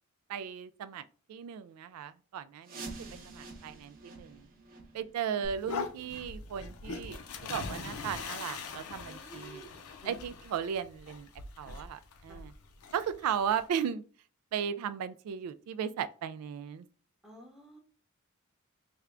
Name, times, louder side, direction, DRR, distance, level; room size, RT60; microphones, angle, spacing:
voice 1, 0.3-1.0 1.3-2.8 3.3-4.5 4.9-7.2 7.5-9.7 10.0-11.3 11.6-12.5 12.9-14.0 14.5-16.9, right 8 dB, 85° right, 0.3 m, -36 dB
sound 1, 2.6-8.2 8.6-8.7 9.2-9.3 9.9-10.0 10.6-10.7, right 3 dB, 40° right, 0.9 m, -49 dB
sound 2, 5.4-13.7, left 4 dB, 80° left, 0.6 m, -42 dB
voice 2, 9.0-10.2 11.6-11.8 12.3-12.4 17.2-17.8, right 1 dB, ahead, 0.8 m, -52 dB
3.4 x 2.2 x 3.6 m
head